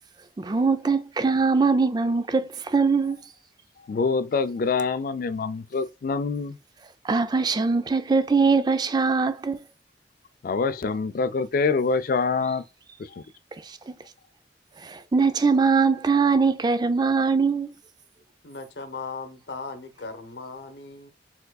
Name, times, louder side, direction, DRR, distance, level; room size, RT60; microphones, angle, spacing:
voice 1, 0.4-3.2 7.0-9.6 13.7-13.9 14.8-17.7, right 4 dB, 25° right, 0.3 m, -22 dB
voice 2, 3.9-6.6 10.4-12.6 13.2-13.3, left 4 dB, 50° left, 0.3 m, -25 dB
voice 3, 18.4-21.1, left 4 dB, 75° left, 0.8 m, -38 dB
4.5 x 3.7 x 2.3 m
head